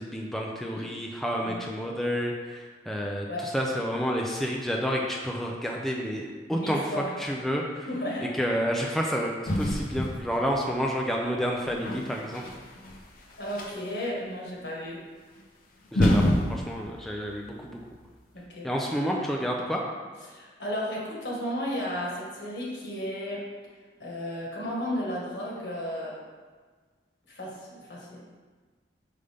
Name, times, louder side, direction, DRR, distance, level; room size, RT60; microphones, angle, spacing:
voice 1, 0.0-6.8 7.2-7.9 8.4-12.4 15.9-17.8 18.6-19.8, equal, ahead, -1 dB, 0.4 m, -30 dB
voice 2, 6.5-7.1 7.9-8.3 13.4-15.0 18.3-18.7 20.2-23.4 24.0-26.2 27.3-28.2, equal, 75° left, -4 dB, 1.5 m, -34 dB
sound 1, 9.5-10.7 11.5-14.0 15.4-15.5 15.9-18.0, left 1 dB, 50° left, 0.7 m, -28 dB
5.4 x 5.1 x 3.4 m, 1.4 s
head